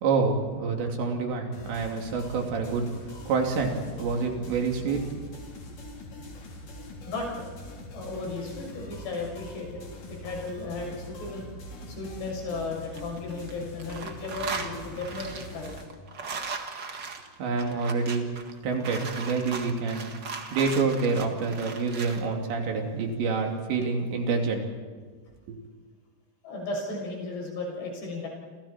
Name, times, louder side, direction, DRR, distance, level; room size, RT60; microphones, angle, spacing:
voice 1, 0.0-2.8 3.3-5.0 17.4-18.3 18.6-20.1 20.5-24.6 25.5-25.6, right 4 dB, 90° right, 2 dB, 5.1 m, -27 dB
sound 1, 1.5-15.8, left 1 dB, 50° left, 5.0 m, -43 dB
voice 2, 7.1-7.5 7.9-9.8 10.1-11.5 11.9-15.7 26.4-28.3, left 3 dB, 75° left, -1 dB, 8.5 m, -35 dB
sound 2, 12.8-13.5 13.8-22.2, right 4 dB, 50° right, 1.3 m, -38 dB
29.5 x 27.5 x 4.5 m, 1.5 s
omnidirectional pair, 4.9 m